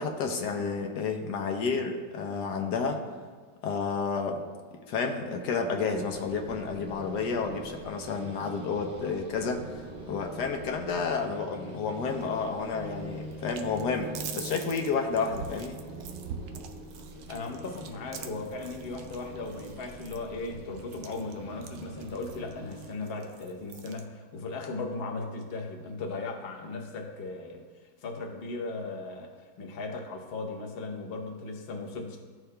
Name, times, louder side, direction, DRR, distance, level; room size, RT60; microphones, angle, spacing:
voice 1, 0.0-3.0 3.6-4.4 4.9-15.8, left 5 dB, 80° left, 3 dB, 1.3 m, -31 dB
sound 1, 5.9-22.9, right 2 dB, 35° right, 0.7 m, -44 dB
sound 2, 12.0-24.0, right 6 dB, 90° right, 1.2 m, -46 dB
voice 2, 17.3-27.6 28.0-32.2, left 3 dB, 45° left, 1 dB, 0.9 m, -37 dB
13.5 x 4.7 x 2.2 m, 1.5 s
omnidirectional pair, 1.8 m